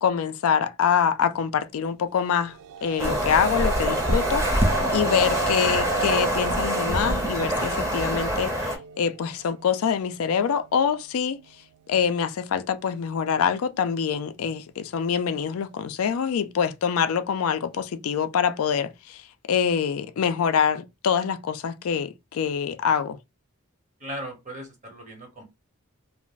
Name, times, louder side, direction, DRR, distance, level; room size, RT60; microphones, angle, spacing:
voice 1, 0.0-11.4 11.9-23.2, left 7 dB, 70° left, 0.4 m, -25 dB
sound 1, 2.4-11.0, right 6 dB, 85° right, 0.3 m, -36 dB
sound 2, 3.0-8.8, equal, 10° right, 0.7 m, -25 dB
voice 2, 24.0-25.4, equal, 35° right, 1.0 m, -37 dB
2.4 x 2.0 x 3.8 m
head